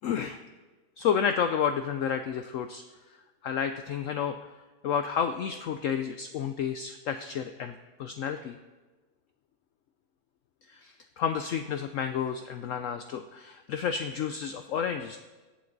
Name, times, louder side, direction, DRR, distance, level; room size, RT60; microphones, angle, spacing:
voice 1, 0.0-0.4 1.0-2.8 3.4-4.3 4.8-8.6 10.7-15.2, left 7 dB, 65° left, 8 dB, 0.9 m, -30 dB
22.0 x 8.5 x 3.9 m, 1.2 s
omnidirectional pair, 1.6 m